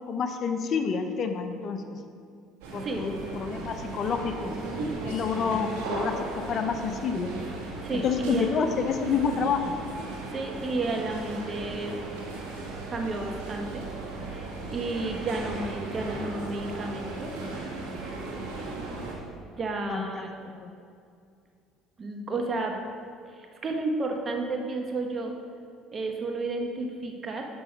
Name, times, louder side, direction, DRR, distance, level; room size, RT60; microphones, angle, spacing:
voice 1, 0.1-2.0 2.7-4.5 5.0-7.3 7.9-9.7 19.9-20.3 20.6-20.7, left 6 dB, 50° left, 7 dB, 0.6 m, -29 dB
sound 1, 2.6-19.1, right 3 dB, 90° right, 1.4 m, -36 dB
voice 2, 7.8-8.5 10.3-12.0 12.9-13.8 14.3-17.3 19.6-20.5 22.0-22.8 23.2-25.4 25.9-27.4, right 2 dB, 35° right, 2 dB, 1.1 m, -32 dB
7.0 x 5.4 x 5.3 m, 2.4 s
supercardioid pair, 85°, 0 cm